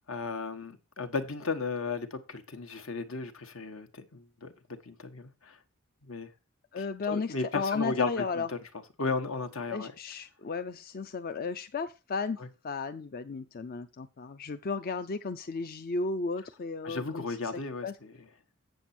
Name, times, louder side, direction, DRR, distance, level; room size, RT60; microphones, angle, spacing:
voice 1, 0.1-4.5 4.8-5.6 6.0-6.3 6.8-8.6 9.0-9.9 16.8-18.1, left 4 dB, 75° left, 1.3 m, -35 dB
voice 2, 6.7-8.5 9.7-12.4 12.6-17.2 17.8-17.9, left 4 dB, 45° left, 0.5 m, -34 dB
8.1 x 7.7 x 4.3 m
head